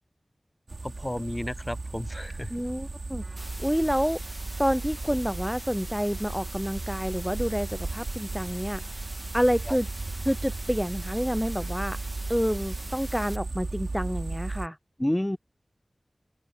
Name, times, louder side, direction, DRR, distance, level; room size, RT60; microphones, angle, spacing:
sound 1, 0.7-14.7, right 3 dB, 80° right, 3.9 m, -36 dB
voice 1, 0.8-2.5 9.7-9.8 15.0-15.4, left 1 dB, 20° left, 0.8 m, -30 dB
voice 2, 2.5-3.2 3.6-4.2 4.6-8.8 9.3-9.9 10.2-12.0 12.3-14.8, equal, ahead, 0.3 m, -28 dB
sound 2, 3.4-13.4, right 1 dB, 25° right, 1.9 m, -43 dB
open air
wide cardioid pair, 40°, 0 cm